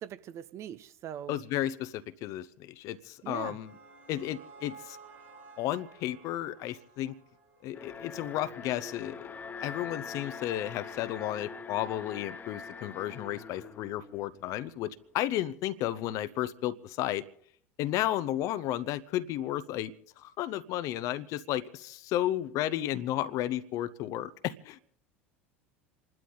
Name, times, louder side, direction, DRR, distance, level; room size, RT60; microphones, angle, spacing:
voice 1, 0.0-1.4 3.2-3.6, right 10 dB, 40° right, 14 dB, 0.9 m, -41 dB
voice 2, 1.3-3.7 4.1-5.0 5.6-7.1 7.6-9.3 9.6-17.2 17.8-24.8, left 13 dB, 50° left, 16 dB, 0.8 m, -33 dB
sound 1, 3.0-8.2, right 4 dB, 70° right, 4.2 m, -54 dB
Alarm, 7.7-14.8, left 5 dB, 25° left, 1.3 m, -44 dB
28.0 x 12.0 x 3.9 m, 0.63 s
figure-of-eight pair, 75°, 7 cm